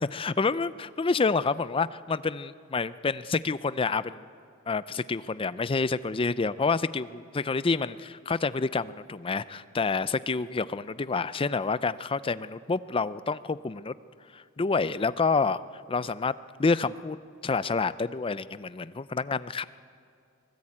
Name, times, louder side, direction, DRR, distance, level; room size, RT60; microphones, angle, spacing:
voice 1, 0.0-4.2 4.7-13.9 14.3-15.6 15.9-16.3 16.6-17.2 17.4-19.6, left 4 dB, 25° left, 16 dB, 0.5 m, -28 dB
24.5 x 18.0 x 8.7 m, 2.4 s
head